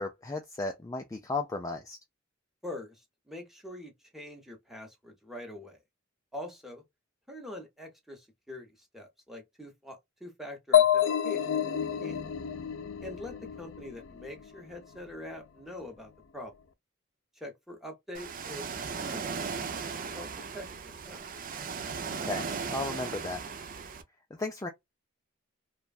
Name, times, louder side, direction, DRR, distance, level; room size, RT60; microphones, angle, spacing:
voice 1, 0.0-2.0 22.1-23.4 24.3-24.7, left 3 dB, 15° left, 0.4 m, -35 dB
voice 2, 2.6-5.8 6.3-6.8 7.3-11.7 12.0-12.2 13.0-16.5 17.4-19.5 20.0-20.3 20.5-21.3, left 1 dB, ahead, 0.9 m, -44 dB
sound 1, 10.7-14.4, left 10 dB, 80° left, 0.5 m, -28 dB
Ocean, 18.1-24.0, right 5 dB, 45° right, 0.5 m, -37 dB
3.1 x 2.3 x 2.3 m
head